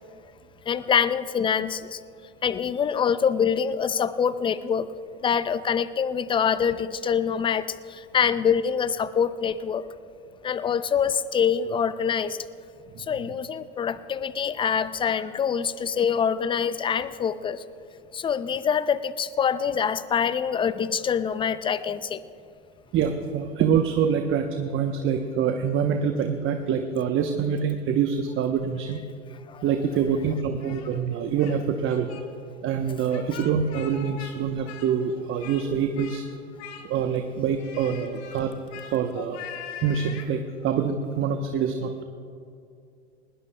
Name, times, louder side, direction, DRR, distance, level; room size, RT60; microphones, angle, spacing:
voice 1, 0.7-2.0 2.4-4.9 5.2-9.9 10.4-12.4 13.1-17.6 18.1-22.2 29.5-29.6, left 7 dB, 15° left, 15 dB, 0.4 m, -25 dB
voice 2, 22.9-29.0 29.6-32.1 32.6-36.2 36.8-38.5 38.9-39.4 39.8-42.0, right 7 dB, 35° right, 5 dB, 0.9 m, -25 dB
Speech, 30.6-31.6 31.8-32.2 33.0-34.4 34.6-35.7 36.0-36.2 36.6-37.2 37.6-40.3, left 8 dB, 70° left, 1.7 m, -42 dB
20.0 x 19.5 x 2.2 m, 2.5 s
hypercardioid pair, 90°, 34 cm